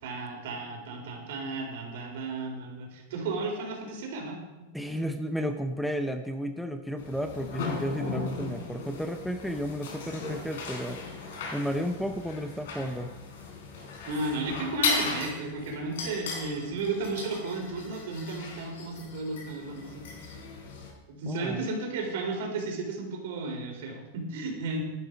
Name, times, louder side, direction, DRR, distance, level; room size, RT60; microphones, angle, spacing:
voice 1, 0.0-4.7 14.1-20.0 21.1-24.8, right 3 dB, 65° right, 2 dB, 4.0 m, -34 dB
voice 2, 4.7-11.0 11.5-13.1 21.3-21.6, equal, ahead, 7 dB, 0.6 m, -32 dB
sound 1, 7.0-20.9, left 4 dB, 80° left, 4.7 m, -37 dB
11.5 x 11.0 x 5.2 m, 1.1 s
supercardioid pair, 155°, 0 cm